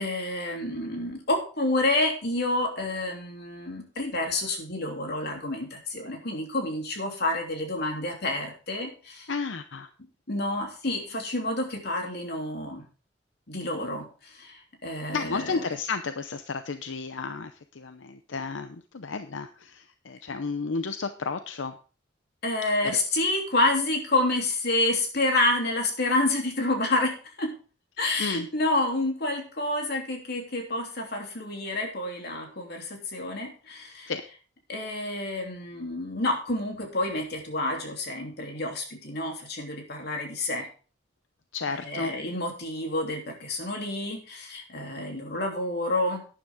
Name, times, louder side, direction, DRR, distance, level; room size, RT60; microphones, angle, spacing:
voice 1, 0.0-9.3 10.3-12.8 13.5-15.6 22.4-27.5 28.0-34.1 34.7-40.7 41.8-46.2, left 2 dB, 60° left, 2 dB, 3.2 m, -29 dB
voice 2, 9.3-9.9 15.1-21.8 22.8-22.9 28.2-28.5 34.1-34.2 41.5-42.1, left 4 dB, 85° left, 9 dB, 0.7 m, -32 dB
12.0 x 10.0 x 3.7 m, 0.37 s
head